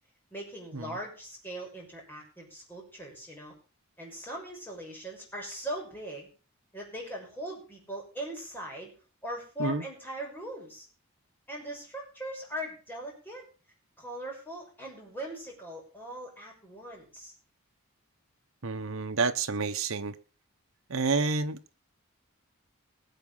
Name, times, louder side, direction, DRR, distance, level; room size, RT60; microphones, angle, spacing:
voice 1, 0.3-3.5 4.0-6.3 6.7-9.0 9.2-10.9 11.5-13.4 14.0-17.3, right 1 dB, 10° left, -1 dB, 6.0 m, -40 dB
voice 2, 18.6-20.1 20.9-21.6, right 4 dB, 75° right, 8 dB, 1.0 m, -29 dB
20.5 x 7.3 x 5.6 m, 0.37 s
head